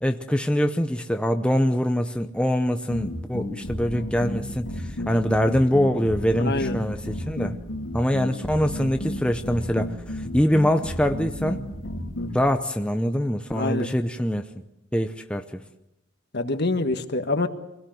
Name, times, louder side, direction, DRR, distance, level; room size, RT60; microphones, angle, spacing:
voice 1, 0.0-7.6 7.9-11.6 12.3-14.5 14.9-15.6, equal, 5° left, 6 dB, 0.7 m, -24 dB
sound 1, 2.9-12.4, left 1 dB, 80° left, 3.3 m, -32 dB
voice 2, 6.4-6.8 13.5-13.9 16.3-17.5, left 2 dB, 55° left, 8 dB, 1.6 m, -25 dB
25.0 x 17.5 x 7.9 m, 0.90 s
head